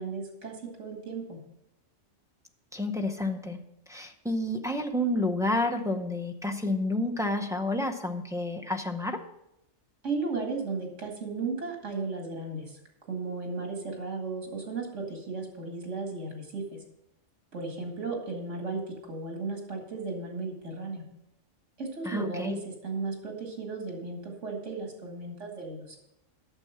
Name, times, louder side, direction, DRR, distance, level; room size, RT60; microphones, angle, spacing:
voice 1, 0.0-1.4 10.0-12.8 13.1-16.8 17.5-21.0 21.8-22.6 22.8-26.0, right 3 dB, 75° right, 1 dB, 2.5 m, -35 dB
voice 2, 2.7-3.6 3.9-9.2 22.0-22.6, left 1 dB, 5° right, 3 dB, 0.5 m, -30 dB
8.9 x 6.9 x 5.8 m, 0.84 s
omnidirectional pair, 1.3 m